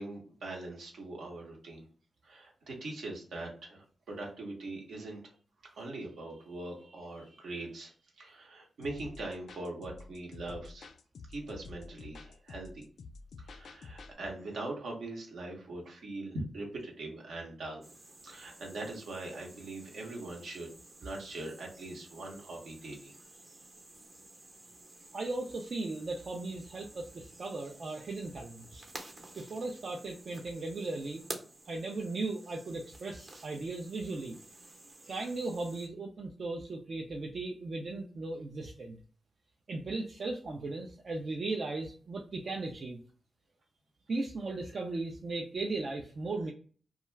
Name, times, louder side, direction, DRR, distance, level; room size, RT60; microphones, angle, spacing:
voice 1, 0.0-1.8 2.2-5.3 5.8-10.9 11.3-12.9 13.4-17.9 18.2-20.7 21.0-23.1, right 2 dB, 80° right, 0 dB, 0.8 m, -42 dB
sound 1, 8.8-14.1, left 4 dB, 75° left, 0.3 m, -49 dB
sound 2, 17.8-35.9, right 2 dB, 45° right, 0.8 m, -52 dB
voice 2, 25.1-28.9 29.4-31.3 31.7-34.4 35.1-39.0 39.7-43.0 44.1-46.5, right 3 dB, 60° right, 1 dB, 0.4 m, -37 dB
2.3 x 2.2 x 3.0 m, 0.41 s
supercardioid pair, 45°, 0 cm